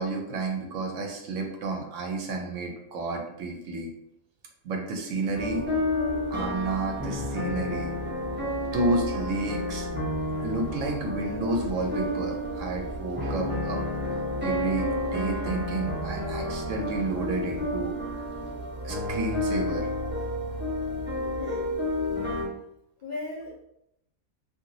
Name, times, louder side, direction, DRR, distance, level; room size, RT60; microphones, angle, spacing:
voice 1, 0.0-3.9 4.6-5.7 6.3-7.9 8.7-9.9 10.4-13.8 14.4-18.0 18.8-19.9 21.2-21.3, right 2 dB, 70° right, 2 dB, 0.9 m, -31 dB
sound 1, 5.3-22.5, left 1 dB, 15° right, 0.4 m, -30 dB
voice 2, 21.4-21.7 23.0-23.6, left 2 dB, 60° left, -6 dB, 0.5 m, -37 dB
2.8 x 2.5 x 2.6 m, 0.78 s
omnidirectional pair, 1.5 m